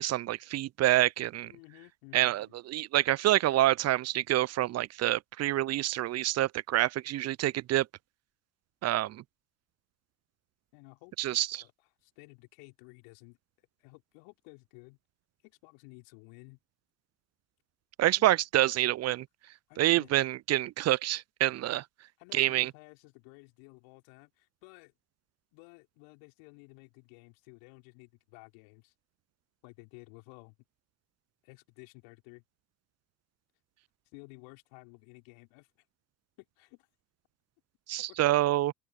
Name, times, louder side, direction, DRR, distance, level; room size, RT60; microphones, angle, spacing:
voice 1, 0.0-1.5 2.1-7.9 8.8-9.2 11.2-11.6 18.0-19.3 19.8-21.8 22.3-22.7 37.9-38.7, right 14 dB, 35° right, 0.6 m, -27 dB
voice 2, 1.4-2.6 10.7-11.2 11.5-11.7 12.0-13.4 13.8-15.0 15.4-16.6 18.2-18.4 19.7-20.1 22.2-24.9 25.5-28.9 29.6-30.6 31.4-32.4 34.1-35.7 36.4-36.9 38.1-38.2, left 34 dB, 65° left, 4.1 m, -54 dB
open air
hypercardioid pair, 70°, 47 cm